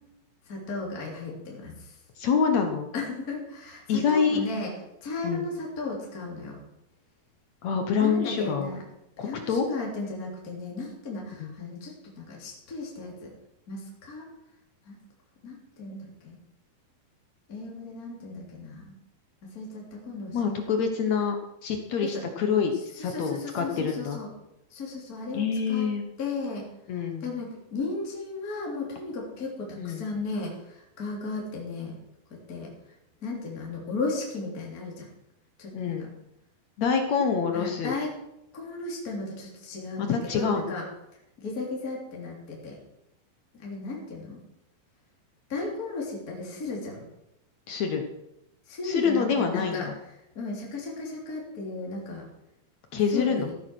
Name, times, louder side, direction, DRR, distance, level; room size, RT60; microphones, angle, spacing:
voice 1, 0.4-2.0 2.9-4.7 5.0-6.6 8.0-8.8 9.2-13.3 13.7-14.3 14.8-15.0 15.4-16.3 17.5-18.9 19.5-20.7 22.0-22.2 22.7-24.3 24.7-32.0 32.3-32.7 33.2-35.1 35.6-36.0 37.5-38.1 38.5-40.8 41.4-42.8 43.5-44.4 45.5-47.0 48.7-49.9 50.3-52.3 52.9-53.5, left 3 dB, 25° left, -3 dB, 3.4 m, -35 dB
voice 2, 2.2-2.9 3.9-4.4 5.2-5.5 7.6-8.7 9.2-9.7 11.4-11.5 20.3-21.4 21.6-24.2 25.3-26.0 26.9-27.3 29.8-30.0 35.7-36.1 36.8-37.9 40.0-40.7 47.7-48.0 48.8-50.0 52.9-53.5, left 6 dB, 65° left, 4 dB, 1.9 m, -26 dB
15.5 x 9.1 x 6.1 m, 0.85 s
omnidirectional pair, 4.5 m